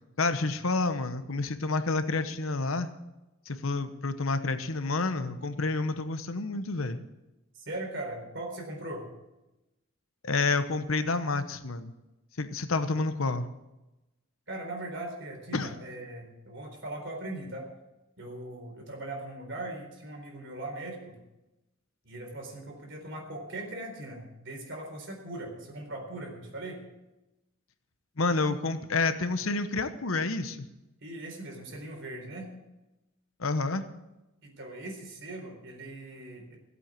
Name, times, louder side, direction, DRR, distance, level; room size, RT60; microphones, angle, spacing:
voice 1, 0.2-2.9 3.5-7.0 10.2-11.9 12.4-13.5 15.5-15.8 28.2-30.7 33.4-33.8, left 3 dB, 85° left, 10 dB, 1.0 m, -29 dB
voice 2, 7.5-9.1 14.5-17.7 18.2-21.2 22.0-26.8 31.0-32.5 34.4-36.6, right 1 dB, 60° right, 1 dB, 4.2 m, -40 dB
15.5 x 8.3 x 7.6 m, 0.99 s
head